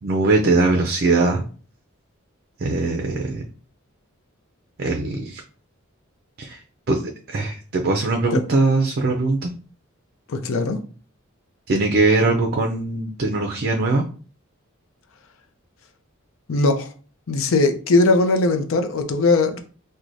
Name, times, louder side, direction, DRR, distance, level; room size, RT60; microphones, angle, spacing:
voice 1, 0.0-1.4 2.6-3.4 4.8-5.4 6.4-6.6 6.9-7.0 7.3-9.5 11.7-14.0, right 3 dB, 50° right, 0.4 m, -21 dB
voice 2, 10.3-10.8 16.5-16.9 17.3-19.6, left 3 dB, 70° left, 0.5 m, -19 dB
4.6 x 2.2 x 2.6 m
head